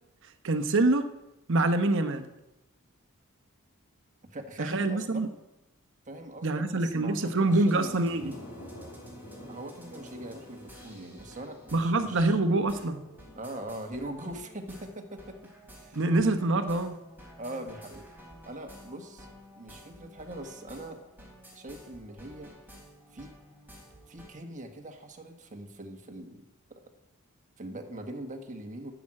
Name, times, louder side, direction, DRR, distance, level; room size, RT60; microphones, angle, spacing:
voice 1, 0.4-1.1 1.5-2.3 4.6-5.3 6.4-8.3 11.7-13.0 15.9-17.0, right 2 dB, 60° right, 9 dB, 0.9 m, -25 dB
voice 2, 4.3-5.2 6.1-8.0 9.4-12.4 13.4-15.4 15.7-16.0 16.5-16.6 17.4-18.1 18.4-19.3 19.6-21.0 21.5-22.5 23.1-23.3 24.1-26.4 27.6-28.9, right 1 dB, 35° right, 4 dB, 1.3 m, -42 dB
sound 1, 7.4-24.3, equal, 10° right, 3.9 m, -52 dB
sound 2, 7.5-14.2, left 1 dB, 75° left, 4.0 m, -50 dB
12.0 x 6.0 x 7.5 m, 0.94 s
head